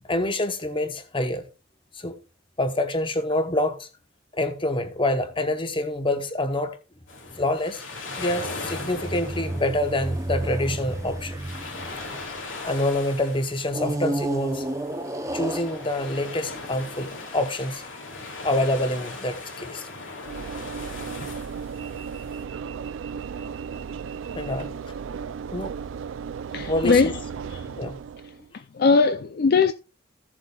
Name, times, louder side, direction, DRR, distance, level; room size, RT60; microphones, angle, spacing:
voice 1, 0.1-1.4 1.9-2.2 2.6-3.9 4.3-6.8 7.3-7.8 8.2-11.4 12.6-14.7 15.3-18.0 18.3-19.9 23.2-23.3 24.3-24.9 25.5-25.7 26.7-27.1 27.8-28.0, left 1 dB, 25° left, 1.0 m, -26 dB
sound 1, 7.1-22.4, left 3 dB, 80° left, 2.6 m, -39 dB
sound 2, 8.2-12.9 13.7-17.1, right 1 dB, 15° right, 0.7 m, -32 dB
Train / Engine / Alarm, 20.2-28.5, right 6 dB, 75° right, 0.4 m, -35 dB
voice 2, 26.5-27.2 27.5-27.8 28.5-29.7, left 4 dB, 50° left, 0.4 m, -20 dB
15.5 x 7.4 x 2.3 m
head